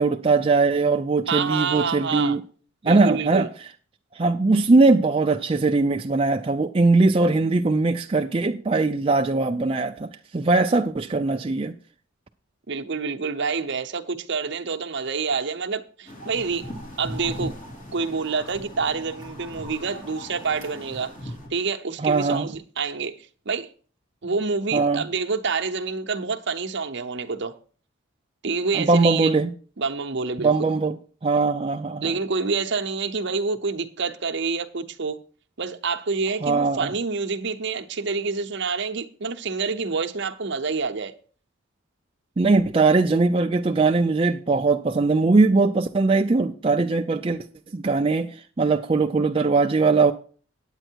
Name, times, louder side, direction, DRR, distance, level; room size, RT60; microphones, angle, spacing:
voice 1, 0.0-2.4 2.8-3.5 4.1-11.7 22.0-22.5 24.7-25.0 28.7-29.5 30.4-31.0 31.2-32.1 36.4-36.9 42.4-47.4 47.7-50.1, right 3 dB, 25° right, 0.4 m, -20 dB
voice 2, 1.3-2.4 2.8-3.5 12.7-16.7 17.0-17.5 17.9-23.2 23.5-23.7 24.2-27.5 28.4-29.4 29.8-30.7 32.0-35.2 35.6-41.1, right 4 dB, 55° right, 0.8 m, -27 dB
sound 1, 16.1-21.5, equal, 35° left, 3.1 m, -38 dB
9.0 x 8.9 x 4.5 m
head